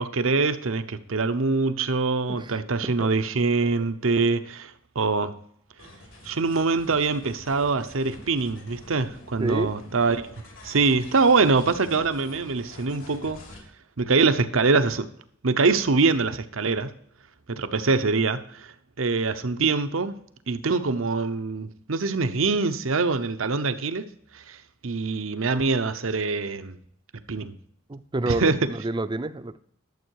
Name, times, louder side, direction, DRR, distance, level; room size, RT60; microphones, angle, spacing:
voice 1, 0.0-5.3 6.2-10.2 10.6-13.4 14.0-15.1 15.4-16.9 17.5-20.2 20.5-24.0 24.3-24.6 24.8-26.8 27.3-27.5 28.3-28.6, right 4 dB, 75° right, 10 dB, 0.8 m, -24 dB
voice 2, 2.3-3.1 9.4-9.7 27.9-29.6, right 2 dB, 25° right, 12 dB, 0.5 m, -29 dB
sound 1, 5.8-13.6, left 1 dB, 75° left, 3.3 m, -47 dB
12.0 x 7.4 x 4.7 m, 0.65 s
head